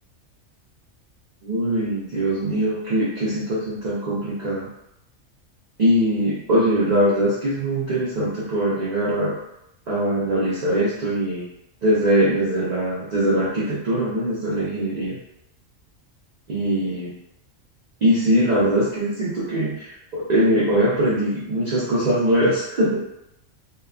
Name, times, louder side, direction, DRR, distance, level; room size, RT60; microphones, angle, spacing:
voice 1, 1.4-4.7 5.8-9.3 9.9-11.4 11.8-15.2 16.5-17.1 18.0-23.0, right 1 dB, 50° right, -8 dB, 0.5 m, -22 dB
2.8 x 2.2 x 2.3 m, 0.82 s
omnidirectional pair, 1.4 m